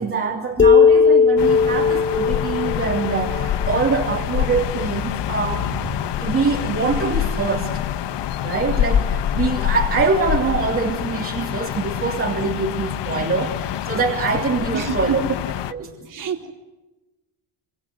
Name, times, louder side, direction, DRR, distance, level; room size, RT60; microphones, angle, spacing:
voice 1, 0.0-7.7 8.4-15.2 15.7-15.9, right 4 dB, 30° right, -1 dB, 3.3 m, -24 dB
sound 1, 0.6-4.1, left 5 dB, 25° left, 1.3 m, -17 dB
sound 2, 1.4-15.7, left 10 dB, 70° left, 1.4 m, -26 dB
voice 2, 14.7-15.4 16.1-16.5, right 6 dB, 45° right, 3 dB, 4.0 m, -27 dB
26.5 x 26.0 x 7.9 m, 1.1 s
cardioid pair, 155°, 44 cm